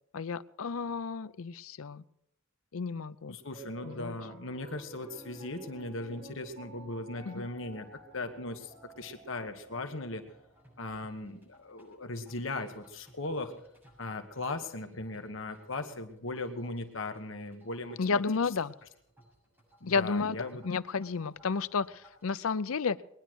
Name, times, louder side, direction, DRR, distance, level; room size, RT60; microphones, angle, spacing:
voice 1, 0.1-2.0 2.7-3.4 3.8-4.1 7.3-7.5 18.0-18.7 19.9-20.4 20.6-23.0, left 5 dB, 85° left, 16 dB, 0.6 m, -32 dB
voice 2, 3.3-7.9 8.1-10.2 10.8-13.5 14.0-18.2 19.8-20.6, left 2 dB, 65° left, 6 dB, 1.4 m, -38 dB
Piano, 3.4-13.8, right 2 dB, 30° right, 4.7 m, -54 dB
sound 1, 4.9-22.3, equal, 10° right, 7.5 m, -62 dB
21.0 x 10.5 x 6.3 m, 0.76 s
head